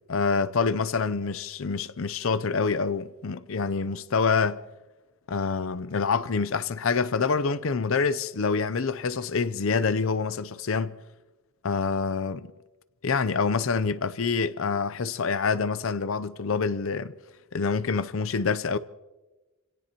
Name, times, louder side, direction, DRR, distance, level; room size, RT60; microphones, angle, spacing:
voice 1, 0.1-4.6 5.3-11.0 11.6-12.5 13.0-17.2 17.5-18.8, left 5 dB, 65° left, 0.6 m, -26 dB
28.0 x 17.5 x 3.0 m
head